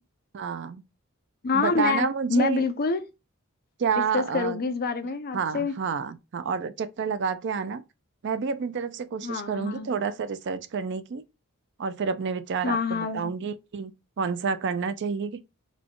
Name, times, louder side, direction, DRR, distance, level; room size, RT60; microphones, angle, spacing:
voice 1, 0.3-0.8 1.5-2.6 3.8-4.6 5.3-7.8 8.2-11.2 11.8-13.9 14.2-15.4, right 5 dB, 55° right, 0.4 m, -29 dB
voice 2, 1.4-3.0 3.9-5.7 9.2-9.9 12.6-13.3, left 4 dB, 45° left, 0.6 m, -27 dB
4.1 x 2.3 x 4.5 m
head